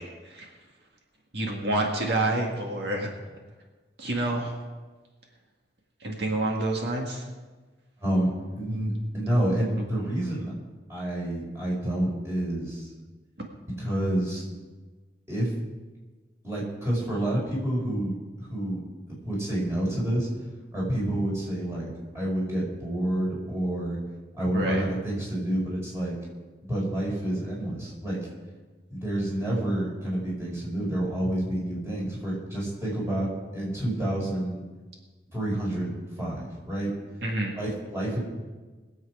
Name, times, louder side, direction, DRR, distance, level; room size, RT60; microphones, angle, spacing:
voice 1, 1.3-3.1 4.0-4.5 6.0-7.2 24.5-24.8 37.2-37.6, right 2 dB, 75° right, 0 dB, 1.9 m, -28 dB
voice 2, 8.6-10.5 10.9-12.9 13.8-14.4 15.3-15.5 16.4-18.8 19.1-20.3 20.7-24.0 24.3-26.1 26.7-28.3 28.9-34.6 35.3-35.9 36.2-36.9 37.5-38.2, right 1 dB, 15° right, -5 dB, 5.2 m, -28 dB
22.0 x 8.0 x 4.9 m, 1.3 s
head